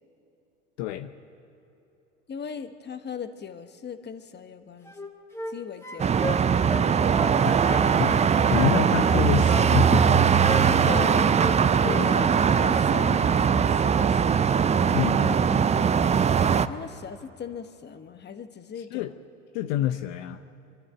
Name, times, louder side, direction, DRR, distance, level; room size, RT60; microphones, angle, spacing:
voice 1, 0.8-1.1 7.4-7.5 8.0-8.2 8.5-10.1 10.6-10.8 14.9-15.7 18.9-19.1 19.5-20.4, left 12 dB, 65° left, 9 dB, 0.9 m, -27 dB
voice 2, 2.3-4.9 5.5-6.2 6.5-7.0 7.7-7.9 10.8-11.3 11.6-14.6 16.7-19.1 19.7-19.9, left 6 dB, 25° left, 9 dB, 1.3 m, -38 dB
sound 1, 4.8-5.6 5.8-7.4 7.6-8.8 9.0-10.1 10.4-11.6 11.8-12.1, left 1 dB, 5° left, 2.1 m, -35 dB
sound 2, 6.0-16.7, right 7 dB, 20° right, 0.5 m, -21 dB
25.5 x 12.0 x 9.1 m, 2.9 s
hypercardioid pair, 85°, 38 cm